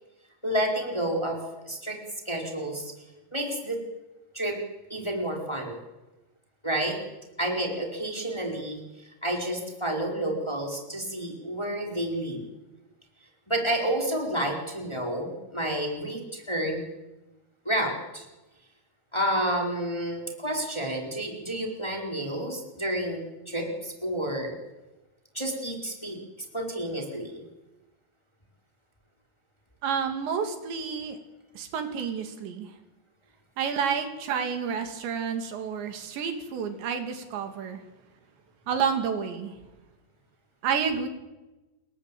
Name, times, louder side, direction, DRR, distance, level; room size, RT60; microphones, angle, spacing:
voice 1, 0.4-1.4 1.6-2.0 2.2-2.9 3.3-3.8 4.3-4.6 4.9-5.8 6.6-7.0 7.4-12.4 13.5-16.8 17.6-18.3 19.1-24.6 25.3-27.4, right 1 dB, 5° left, 1 dB, 4.2 m, -30 dB
voice 2, 29.8-31.2 31.5-32.7 33.6-37.8 38.7-39.5 40.6-41.1, right 6 dB, 85° right, 6 dB, 4.9 m, -29 dB
28.5 x 21.5 x 8.6 m, 1.1 s
omnidirectional pair, 5.0 m